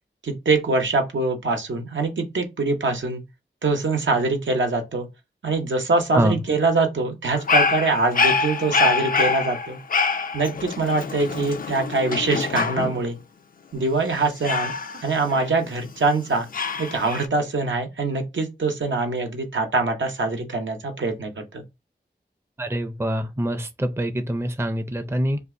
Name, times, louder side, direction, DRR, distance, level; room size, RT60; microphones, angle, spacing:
voice 1, 0.2-3.2 3.6-5.1 5.4-9.8 10.3-13.2 13.7-16.5 16.8-21.6, right 3 dB, 85° right, 0.7 m, -24 dB
Dog, 7.3-13.1 14.4-15.9 16.5-17.2, left 4 dB, 50° left, 0.4 m, -25 dB
voice 2, 22.6-25.4, right 1 dB, 15° right, 0.5 m, -25 dB
2.5 x 2.4 x 3.6 m
wide cardioid pair, 60°, 19 cm